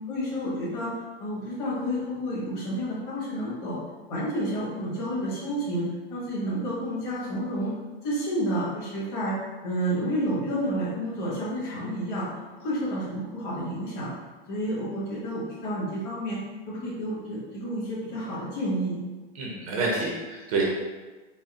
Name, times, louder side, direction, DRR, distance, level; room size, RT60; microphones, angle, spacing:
voice 1, 0.1-0.9 1.2-3.8 4.1-5.8 6.1-7.7 8.0-9.4 9.6-12.3 12.6-14.1 14.5-16.4 16.7-19.0, equal, 35° left, -7 dB, 1.3 m, -30 dB
voice 2, 19.3-20.7, right 3 dB, 35° right, -2 dB, 0.5 m, -28 dB
4.1 x 2.0 x 3.6 m, 1.3 s
supercardioid pair, 180°, 30 cm